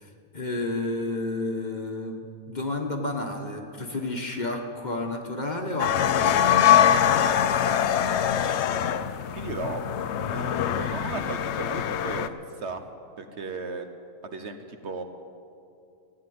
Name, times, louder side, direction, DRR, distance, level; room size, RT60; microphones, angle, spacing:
voice 1, 0.0-6.9, left 2 dB, 35° left, 3 dB, 1.3 m, -31 dB
sound 1, 5.8-12.3, left 9 dB, 65° left, 0.8 m, -23 dB
voice 2, 9.3-9.8 10.2-12.8 13.2-13.9 14.2-15.0, right 4 dB, 60° right, 7 dB, 1.1 m, -35 dB
15.5 x 9.4 x 9.3 m, 2.5 s
omnidirectional pair, 1.5 m